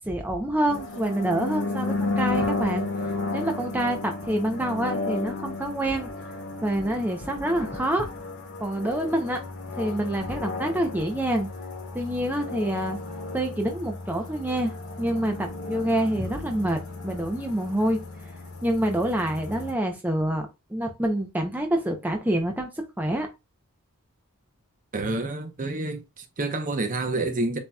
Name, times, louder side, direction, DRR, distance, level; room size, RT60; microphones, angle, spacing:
voice 1, 0.0-2.9 3.3-6.1 6.6-8.1 8.6-9.4 9.7-11.5 11.9-13.0 13.3-14.7 15.0-18.0 18.6-22.7 23.0-23.3, right 1 dB, 10° right, 0.6 m, -27 dB
sound 1, 0.7-19.7, left 3 dB, 80° left, 1.8 m, -33 dB
voice 2, 24.9-27.6, right 2 dB, 40° right, 0.8 m, -28 dB
7.4 x 2.9 x 2.3 m
head